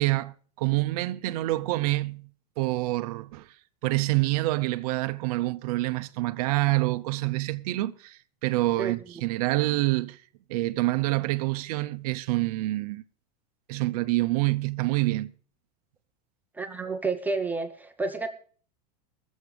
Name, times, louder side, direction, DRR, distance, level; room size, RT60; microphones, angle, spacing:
voice 1, 0.0-2.3 2.6-3.5 3.8-10.2 10.5-13.0 13.7-15.3, right 19 dB, 60° right, 0.7 m, -27 dB
voice 2, 16.5-18.3, right 3 dB, 10° right, 0.8 m, -30 dB
19.5 x 7.3 x 5.0 m
supercardioid pair, 155°, 21 cm